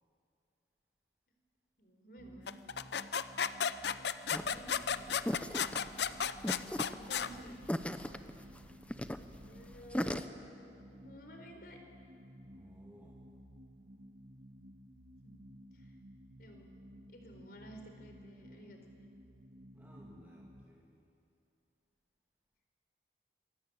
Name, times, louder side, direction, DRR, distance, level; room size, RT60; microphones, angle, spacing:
voice 1, 1.8-2.5 4.3-6.0 6.9-7.6 9.5-10.2 10.9-11.8 15.2-15.9 16.4-19.1, right 1 dB, 55° left, 4 dB, 4.3 m, -54 dB
sound 1, 2.2-20.7, equal, 45° right, 1.4 m, -55 dB
sound 2, 2.5-7.3, left 7 dB, 70° left, 0.7 m, -34 dB
sound 3, 4.3-10.2, equal, 5° left, 0.8 m, -38 dB
voice 2, 12.4-13.2 19.7-21.1, equal, 10° right, -4 dB, 2.5 m, -59 dB
26.5 x 22.5 x 8.8 m, 2.6 s
head